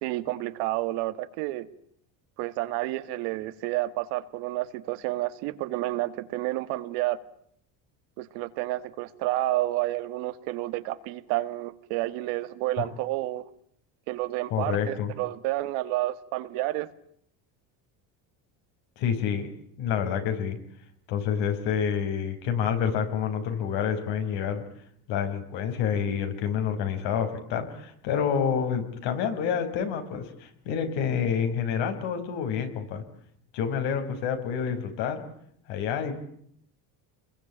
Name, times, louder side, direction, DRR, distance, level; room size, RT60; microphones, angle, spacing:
voice 1, 0.0-1.7 2.4-7.2 8.2-13.4 14.1-16.9, right 17 dB, 85° right, 1.9 m, -30 dB
voice 2, 14.5-15.1 19.0-19.5 19.8-20.6 21.1-24.6 25.1-33.0 33.5-35.2 35.7-36.2, left 7 dB, 80° left, 5.5 m, -28 dB
27.5 x 22.0 x 8.7 m
cardioid pair, 115°, 42 cm